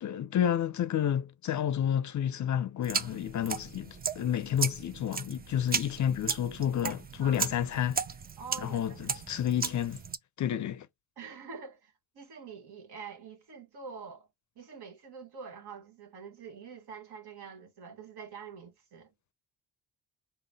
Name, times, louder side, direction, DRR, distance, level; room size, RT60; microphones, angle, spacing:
voice 1, 0.0-8.0 8.6-10.0 10.4-10.9, left 10 dB, 45° left, 0.5 m, -30 dB
sound 1, 2.8-10.2, right 5 dB, 25° right, 0.4 m, -36 dB
voice 2, 8.4-9.1 11.2-14.3 14.5-19.1, right 6 dB, 65° right, 1.3 m, -46 dB
3.7 x 2.2 x 3.3 m
supercardioid pair, 55°, 41 cm